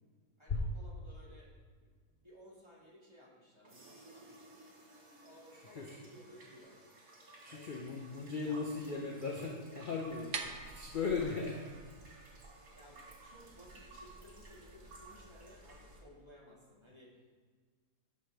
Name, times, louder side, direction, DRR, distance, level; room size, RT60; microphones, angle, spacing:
voice 1, 0.4-4.7 5.2-6.8 7.5-7.7 8.5-9.2 12.7-17.2, equal, 20° right, -5 dB, 1.9 m, -58 dB
sound 1, 3.6-16.0, right 2 dB, 75° right, 2.4 m, -57 dB
voice 2, 5.5-6.0 7.4-11.6, left 4 dB, 45° left, 0 dB, 0.7 m, -38 dB
sound 2, 10.0-16.0, right 5 dB, 55° right, 0.6 m, -49 dB
13.0 x 5.6 x 3.4 m, 1.5 s
omnidirectional pair, 1.7 m